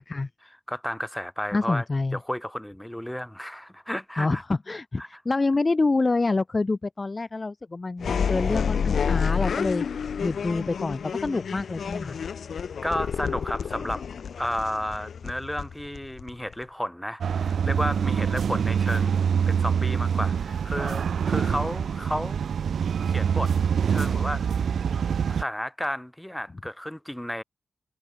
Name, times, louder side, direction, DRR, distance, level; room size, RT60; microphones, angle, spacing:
voice 1, 0.4-1.8 2.1-4.4 5.0-5.2 12.8-14.1 14.4-22.5 23.1-23.6 23.9-24.6 25.3-27.4, equal, 5° left, 7.4 m, -32 dB
voice 2, 1.5-2.2 4.2-9.8 10.2-12.2, left 3 dB, 25° left, 5.4 m, -27 dB
sound 1, 8.0-16.6, left 6 dB, 65° left, 4.6 m, -29 dB
sound 2, 17.2-25.4, right 7 dB, 75° right, 2.7 m, -25 dB
wide cardioid pair, 135°, 0 cm